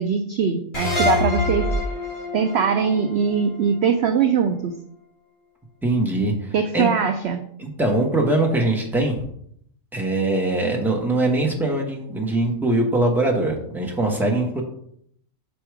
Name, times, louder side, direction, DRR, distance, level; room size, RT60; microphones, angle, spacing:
voice 1, 0.0-1.7 2.3-4.8 6.5-7.4, right 6 dB, 65° right, 7 dB, 0.6 m, -21 dB
sound 1, 0.7-4.0, left 3 dB, 45° left, 3.1 m, -25 dB
voice 2, 5.8-6.9 7.6-9.2 9.9-14.6, right 2 dB, ahead, 0 dB, 1.0 m, -22 dB
5.2 x 4.9 x 4.7 m, 0.69 s
omnidirectional pair, 1.5 m